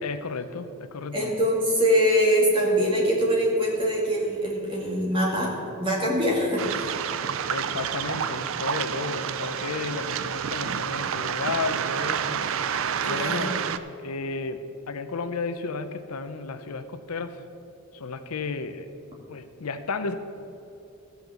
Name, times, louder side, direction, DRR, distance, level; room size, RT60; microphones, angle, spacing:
voice 1, 0.0-1.3 7.5-12.4 13.0-13.6 14.0-17.4 17.9-18.9 19.3-20.1, left 4 dB, 80° left, 9 dB, 0.7 m, -33 dB
voice 2, 1.1-7.0 13.0-13.5, equal, 25° right, -4 dB, 2.4 m, -23 dB
Waves surf, 6.6-13.8, right 7 dB, 60° right, 0.4 m, -29 dB
13.5 x 5.8 x 7.1 m, 2.8 s
head